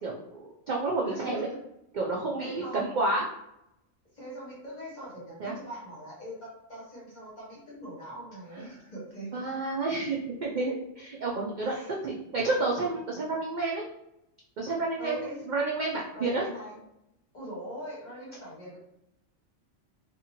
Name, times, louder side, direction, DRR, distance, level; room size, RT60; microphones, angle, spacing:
voice 1, 0.0-1.5 1.9-3.2 5.4-5.5 8.5-8.7 9.3-11.7 12.0-13.8 14.6-16.4, right 3 dB, 75° right, -2 dB, 0.4 m, -30 dB
voice 2, 1.1-1.6 2.4-2.9 4.1-9.4 11.6-12.0 15.0-15.4 16.1-16.8 17.3-18.8, equal, 40° left, -6 dB, 1.0 m, -41 dB
2.7 x 2.5 x 2.8 m, 0.81 s
omnidirectional pair, 1.3 m